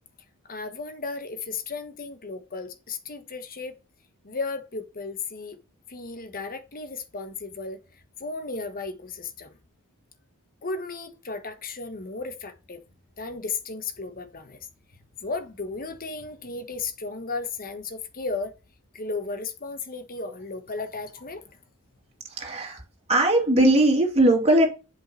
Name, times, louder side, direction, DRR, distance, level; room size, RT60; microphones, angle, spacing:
voice 1, 0.4-3.8 4.2-5.6 5.9-9.5 10.6-12.8 13.2-18.5 18.9-21.6, left 3 dB, 40° left, 1.3 m, -35 dB
voice 2, 22.3-22.8 23.1-24.7, right 1 dB, 30° right, 2.5 m, -19 dB
7.5 x 5.6 x 4.2 m
head